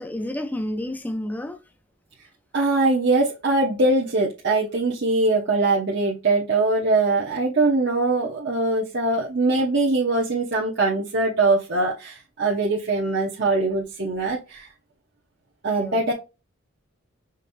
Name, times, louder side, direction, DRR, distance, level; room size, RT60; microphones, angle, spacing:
voice 1, 0.0-1.6 15.8-16.1, left 1 dB, 10° left, 0.5 m, -30 dB
voice 2, 2.5-14.7 15.6-16.1, right 2 dB, 60° right, 1.0 m, -22 dB
5.2 x 2.7 x 2.6 m
head